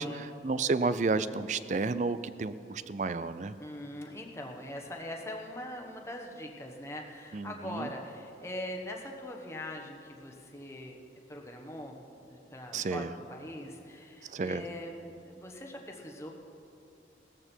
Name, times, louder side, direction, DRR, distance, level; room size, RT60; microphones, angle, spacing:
voice 1, 0.0-3.5 7.3-7.9 12.7-13.1 14.3-14.6, right 3 dB, 40° right, 14 dB, 0.4 m, -31 dB
voice 2, 3.6-11.0 11.3-16.3, left 1 dB, 15° left, 1 dB, 1.1 m, -42 dB
16.5 x 13.5 x 4.5 m, 2.6 s
head